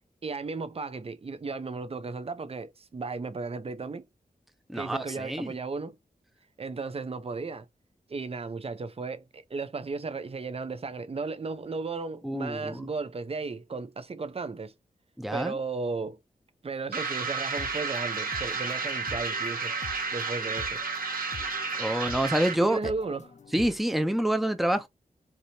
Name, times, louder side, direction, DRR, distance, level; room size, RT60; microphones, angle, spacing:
voice 1, 0.2-4.1 4.7-6.0 6.6-7.7 8.1-14.7 15.3-16.2 16.6-19.7 20.1-20.8 22.6-23.3, right 4 dB, 40° right, 0.6 m, -35 dB
voice 2, 4.7-5.5 12.2-12.9 15.2-15.5 21.8-22.8 23.5-24.9, right 1 dB, ahead, 0.6 m, -27 dB
sound 1, 16.9-22.7, right 4 dB, 75° right, 1.2 m, -32 dB
sound 2, 17.5-23.8, left 5 dB, 50° left, 0.7 m, -46 dB
4.8 x 2.8 x 2.7 m
wide cardioid pair, 115°, 15 cm